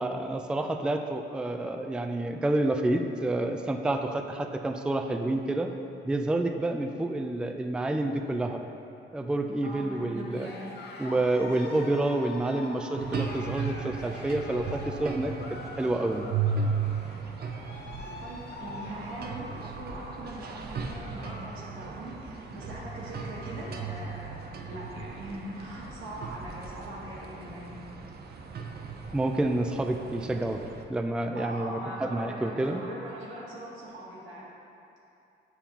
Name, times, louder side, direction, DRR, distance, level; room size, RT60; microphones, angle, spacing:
voice 1, 0.0-5.7 6.0-8.6 9.1-10.5 11.0-15.3 15.8-16.3 29.1-30.6 30.9-32.8, right 2 dB, 5° right, 5 dB, 0.3 m, -28 dB
voice 2, 9.6-10.7 18.2-24.3 24.6-27.8 31.3-34.4, right 1 dB, 85° right, -5 dB, 1.3 m, -41 dB
Cheering, 10.3-21.5 21.8-22.2 22.7-22.8 22.9-23.8, left 2 dB, 60° left, 0.8 m, -45 dB
sound 1, 12.9-30.8, right 5 dB, 55° right, 0.6 m, -36 dB
7.0 x 5.5 x 2.9 m, 2.7 s
cardioid pair, 65°, 20 cm